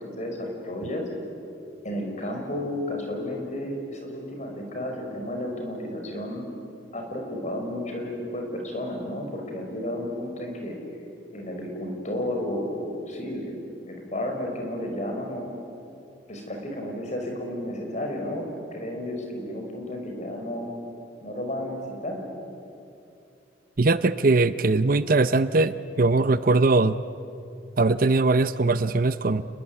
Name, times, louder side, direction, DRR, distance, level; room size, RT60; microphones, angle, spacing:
voice 1, 0.2-1.0 1.8-6.5 6.9-10.8 11.3-15.5 16.3-20.7 21.2-22.2, left 1 dB, 40° left, 2 dB, 5.6 m, -32 dB
voice 2, 23.8-27.0 27.8-29.4, right 3 dB, 50° right, 14 dB, 0.7 m, -21 dB
29.5 x 20.5 x 9.8 m, 2.7 s
head